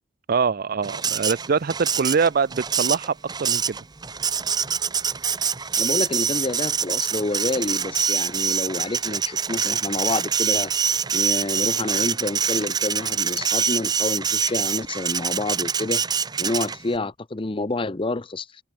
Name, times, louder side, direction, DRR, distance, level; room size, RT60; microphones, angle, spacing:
voice 1, 0.3-3.8, right 5 dB, 50° right, 0.5 m, -23 dB
Printer, 0.8-17.0, right 7 dB, 20° right, 0.7 m, -25 dB
voice 2, 5.8-10.7 11.1-16.1 16.4-18.5, left 2 dB, 30° left, 0.7 m, -28 dB
head